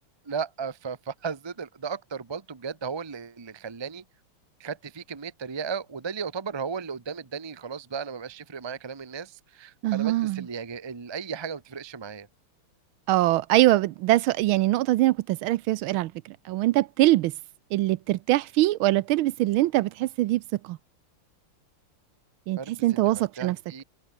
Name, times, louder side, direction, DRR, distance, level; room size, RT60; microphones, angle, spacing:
voice 1, 0.2-4.0 4.6-12.3 22.6-23.8, right 6 dB, 30° right, 0.4 m, -35 dB
voice 2, 9.8-10.5 13.1-17.3 17.7-20.8 22.5-23.6, right 16 dB, 80° right, 1.4 m, -23 dB
omnidirectional pair, 2.4 m